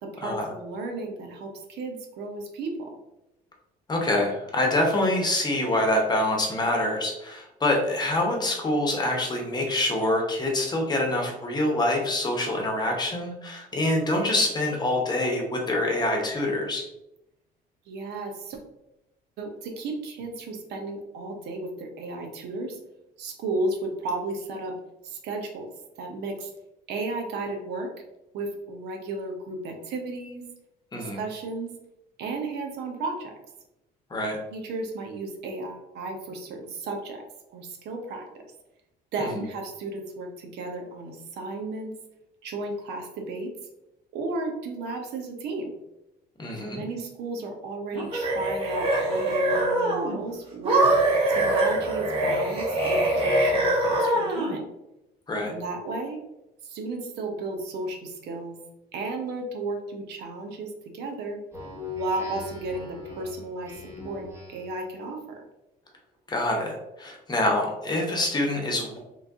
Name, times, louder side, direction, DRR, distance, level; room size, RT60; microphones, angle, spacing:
voice 1, 0.0-2.9 17.9-18.6 19.4-22.8 23.2-24.7 25.0-25.7 26.0-26.5 26.9-27.9 28.3-30.4 31.0-31.7 32.2-33.3 34.5-37.2 37.5-38.2 39.1-41.9 42.4-43.5 44.1-45.7 46.6-54.7 55.4-56.2 56.6-58.6 58.9-61.4 62.0-64.2 64.5-65.4, right 2 dB, 80° right, 2 dB, 0.8 m, -34 dB
voice 2, 3.9-16.8 30.9-31.2 34.1-34.4 39.2-39.3 46.4-46.8 55.3-55.5 66.3-69.0, left 1 dB, 25° left, 1 dB, 0.9 m, -25 dB
sound 1, 47.9-50.1 50.6-54.5, right 1 dB, 35° right, 1.4 m, -23 dB
Speech synthesizer, 61.5-64.8, left 5 dB, 15° right, 1.1 m, -40 dB
3.2 x 2.5 x 3.5 m, 0.89 s
cardioid pair, 110°, 17 cm